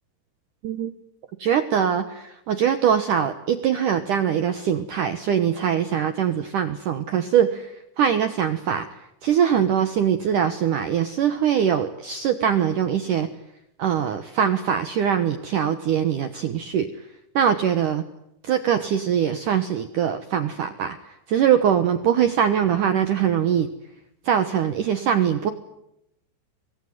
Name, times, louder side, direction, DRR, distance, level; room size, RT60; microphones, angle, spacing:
voice 1, 1.4-7.7 8.0-8.9 9.2-13.3 13.8-16.9 17.4-18.0 18.5-21.0 21.3-23.7 24.3-25.5, right 8 dB, 90° right, 9 dB, 1.8 m, -22 dB
25.5 x 21.0 x 9.5 m, 0.82 s
omnidirectional pair, 5.6 m